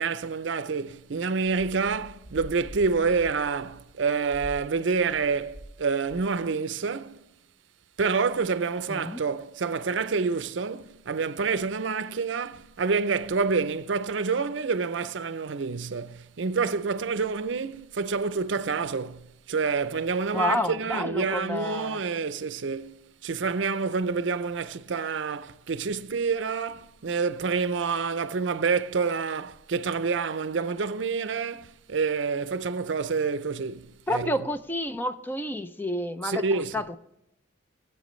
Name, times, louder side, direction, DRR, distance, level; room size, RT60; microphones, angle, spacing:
voice 1, 0.0-7.2 8.0-23.0 23.2-34.3 36.2-36.8, right 5 dB, 70° right, 0.5 m, -28 dB
sound 1, 1.4-5.8 6.0-6.4, right 1 dB, 40° left, 3.1 m, -45 dB
voice 2, 8.9-9.2 20.3-22.0 34.1-36.4 36.7-37.0, left 1 dB, 10° left, 0.4 m, -29 dB
18.5 x 8.3 x 3.1 m
head